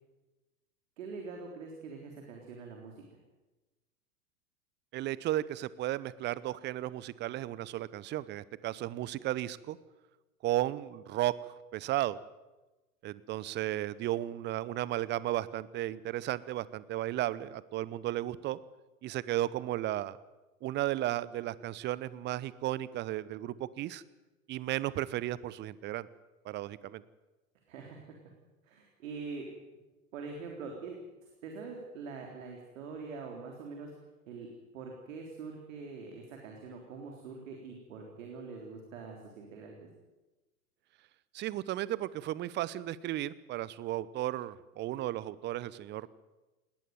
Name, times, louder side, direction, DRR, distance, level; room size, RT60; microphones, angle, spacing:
voice 1, 1.0-3.0 27.7-28.2 28.6-29.5 30.1-31.0 31.2-33.9 34.3-39.9, right 4 dB, 55° right, 2 dB, 3.8 m, -44 dB
voice 2, 4.9-9.8 10.4-12.2 13.0-18.6 19.0-20.2 20.6-24.0 24.5-26.1 26.4-27.0 41.3-46.2, right 14 dB, 25° right, 19 dB, 0.8 m, -34 dB
19.5 x 19.0 x 9.3 m, 1.1 s
figure-of-eight pair, 90°, 45 cm